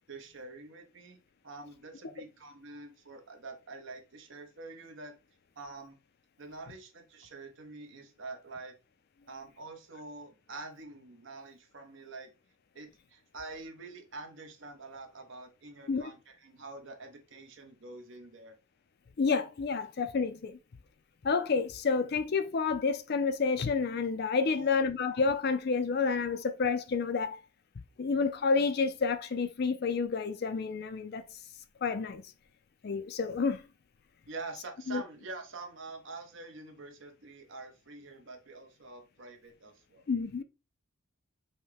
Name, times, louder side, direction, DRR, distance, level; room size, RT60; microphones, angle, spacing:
voice 1, 0.1-1.2 1.4-5.2 5.6-6.0 6.4-8.8 9.3-12.3 12.7-18.6 24.5-24.8 34.3-40.0, right 3 dB, 60° right, 0.9 m, -46 dB
voice 2, 19.2-20.6 21.2-27.4 28.0-31.3 31.8-32.2 32.8-33.6 34.9-35.0 40.1-40.4, left 4 dB, 45° left, 0.4 m, -29 dB
5.4 x 2.2 x 3.3 m
head